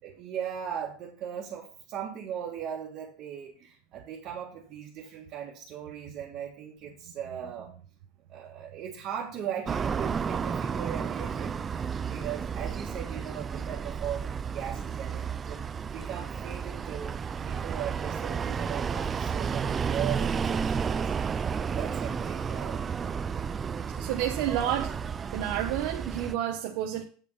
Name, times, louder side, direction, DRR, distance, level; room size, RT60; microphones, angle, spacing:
voice 1, 0.0-7.7 8.3-15.6 15.9-21.1 21.6-22.8, right 9 dB, 40° right, 1.8 m, -38 dB
sound 1, 9.7-26.3, right 6 dB, 20° right, 0.3 m, -32 dB
voice 2, 24.0-25.0 25.3-27.0, right 11 dB, 65° right, 1.0 m, -30 dB
8.6 x 5.4 x 5.5 m
supercardioid pair, 150°, 0 cm